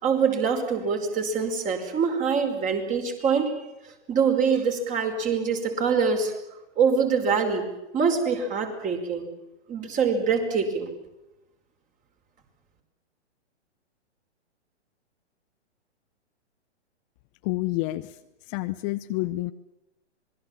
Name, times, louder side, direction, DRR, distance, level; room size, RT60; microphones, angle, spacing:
voice 1, 0.0-3.5 4.1-6.3 6.8-7.6 7.9-9.3 9.7-10.9, right 5 dB, 20° right, 5 dB, 5.1 m, -24 dB
voice 2, 17.4-18.2 18.5-19.5, left 19 dB, 30° left, 10 dB, 0.8 m, -28 dB
26.5 x 21.5 x 7.4 m, 0.95 s
hypercardioid pair, 130°, 34 cm